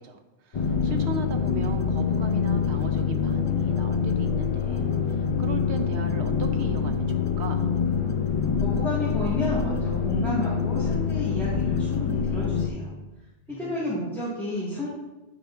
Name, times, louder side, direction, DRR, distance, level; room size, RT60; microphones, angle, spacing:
voice 1, 0.0-7.7 13.5-14.2, right 3 dB, 80° right, 5 dB, 1.0 m, -37 dB
sound 1, 0.5-12.7, left 6 dB, 50° left, 0.3 m, -25 dB
voice 2, 8.6-12.9 13.5-14.9, equal, ahead, -9 dB, 1.7 m, -31 dB
9.8 x 5.9 x 2.5 m, 1.1 s
omnidirectional pair, 1.1 m